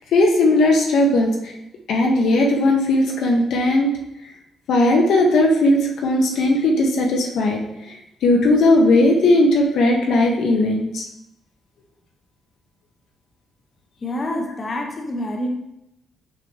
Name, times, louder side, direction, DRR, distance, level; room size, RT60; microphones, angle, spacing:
voice 1, 0.1-1.3 1.9-3.9 4.7-7.6 8.2-11.1, left 2 dB, 75° left, 1 dB, 0.9 m, -17 dB
voice 2, 14.0-15.6, left 1 dB, 35° left, 1 dB, 1.0 m, -27 dB
6.7 x 5.1 x 2.9 m, 0.85 s
cardioid pair, 90°, 0 cm